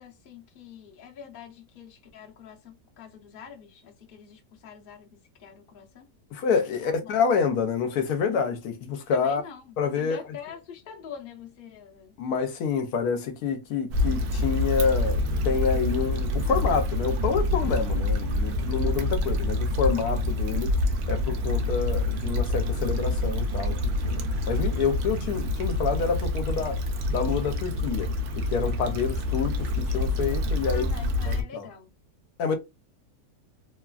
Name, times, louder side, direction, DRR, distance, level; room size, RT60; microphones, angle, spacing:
voice 1, 0.0-6.1 6.8-7.2 9.1-12.1 30.6-31.9, left 7 dB, 50° left, 0.7 m, -45 dB
voice 2, 6.3-9.4 9.8-10.2 12.2-20.7 21.1-23.8 24.0-26.8 27.1-30.9 31.3-31.7 32.4-32.6, left 6 dB, 85° left, 1.1 m, -28 dB
Stream / Traffic noise roadway noise / Trickle dribble, 13.9-31.4, left 1 dB, 85° right, 1.1 m, -27 dB
3.0 x 2.3 x 2.3 m
omnidirectional pair, 1.6 m